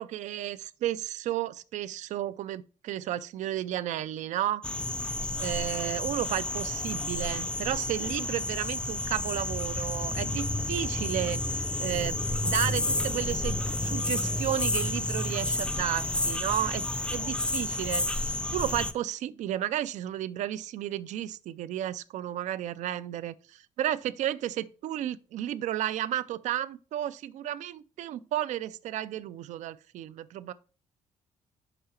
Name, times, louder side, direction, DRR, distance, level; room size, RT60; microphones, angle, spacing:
voice 1, 0.0-4.7 5.4-11.4 11.8-30.5, right 12 dB, 65° right, 0.4 m, -33 dB
sound 1, 4.6-18.9, left 1 dB, 10° left, 0.3 m, -30 dB
5.5 x 4.9 x 4.3 m
cardioid pair, 140°, 13 cm